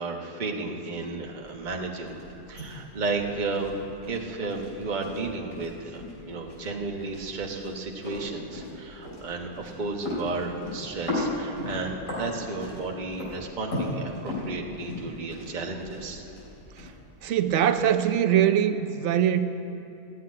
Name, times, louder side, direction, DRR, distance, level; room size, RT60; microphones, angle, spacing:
voice 1, 0.0-2.1 2.5-3.7 4.1-16.2, right 3 dB, 30° right, 1 dB, 1.2 m, -33 dB
sound 1, 0.9-17.9, left 1 dB, 55° left, 4.0 m, -38 dB
voice 2, 17.2-19.4, right 10 dB, 60° right, 9 dB, 0.8 m, -22 dB
14.5 x 7.9 x 9.6 m, 2.8 s
omnidirectional pair, 1.7 m